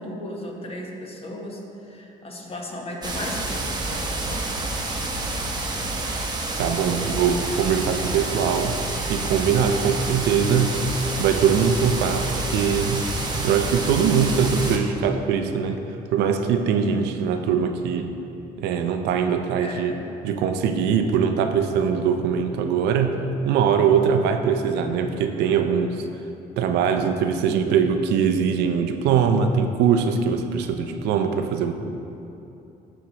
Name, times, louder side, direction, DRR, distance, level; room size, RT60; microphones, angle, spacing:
voice 1, 0.0-4.7 19.6-20.0, left 1 dB, 35° left, 0 dB, 1.1 m, -36 dB
sound 1, 3.0-14.8, right 2 dB, 25° right, 0.9 m, -28 dB
voice 2, 6.6-8.8 9.1-10.8 11.2-15.8 16.1-18.1 18.6-20.0 20.2-23.2 23.4-26.0 26.6-31.7, right 7 dB, 80° right, 6 dB, 0.5 m, -22 dB
12.5 x 4.5 x 2.9 m, 2.8 s
cardioid pair, 110°, 17 cm